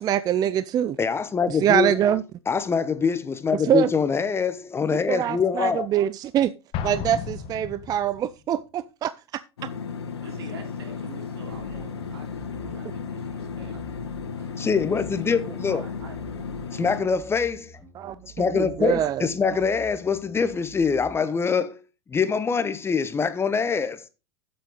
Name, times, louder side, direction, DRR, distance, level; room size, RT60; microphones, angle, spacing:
voice 1, 0.0-1.0 1.5-2.2 3.6-3.9 4.9-6.5 6.8-9.4 18.0-19.3, right 10 dB, 30° right, 0.4 m, -24 dB
voice 2, 1.0-2.1 2.5-5.9 14.6-15.8 16.8-17.7 18.4-21.8 22.1-24.1, left 5 dB, 20° left, 0.9 m, -24 dB
Explosion, 6.7-8.3, left 7 dB, 45° left, 1.5 m, -33 dB
sound 1, 9.6-17.0, left 6 dB, 80° left, 1.9 m, -34 dB
voice 3, 10.2-14.0 14.3-14.5 14.9-15.4 15.6-16.9, right 4 dB, 75° right, 3.5 m, -47 dB
sound 2, 11.5-21.1, right 1 dB, 5° right, 2.6 m, -48 dB
10.0 x 7.8 x 3.9 m
hypercardioid pair, 95°, 14 cm